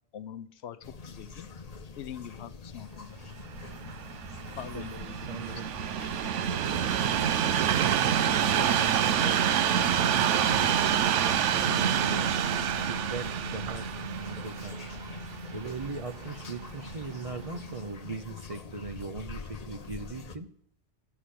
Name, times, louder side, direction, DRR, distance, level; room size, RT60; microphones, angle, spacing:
voice 1, 0.1-1.5 2.0-3.1 4.6-5.6, left 10 dB, 70° left, 0.9 m, -43 dB
sound 1, 0.8-20.4, left 4 dB, 40° left, 0.8 m, -45 dB
Train, 3.4-16.6 17.3-17.4, right 9 dB, 90° right, 1.0 m, -27 dB
voice 2, 4.5-5.7 6.5-12.3 12.9-14.8 15.5-20.5, right 4 dB, 35° right, 0.6 m, -40 dB
Bass guitar, 11.6-17.9, right 3 dB, 55° right, 1.1 m, -40 dB
11.5 x 6.0 x 8.2 m
omnidirectional pair, 1.2 m